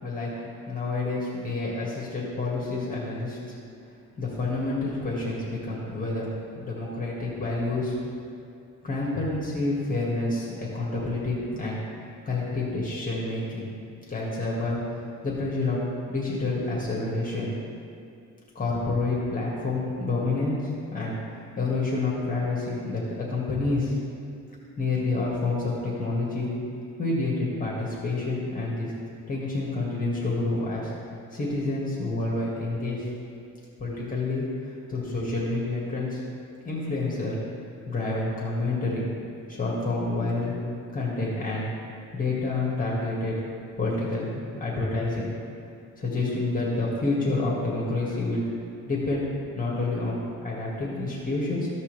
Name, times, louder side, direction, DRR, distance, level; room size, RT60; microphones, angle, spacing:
voice 1, 0.7-3.4 4.2-8.0 8.8-11.8 12.3-13.7 14.1-14.8 15.2-15.8 16.1-17.5 18.6-21.2 21.6-24.0 24.8-26.5 27.0-28.9 29.3-30.9 31.3-33.0 33.8-36.2 36.6-37.4 37.9-39.2 39.5-40.5 40.9-41.7 42.1-43.3 43.8-45.3 46.0-48.4 48.9-49.3 49.5-51.7, left 2 dB, 25° left, -5 dB, 2.1 m, -28 dB
14.5 x 5.5 x 3.5 m, 2.5 s
cardioid pair, 90°, 30 cm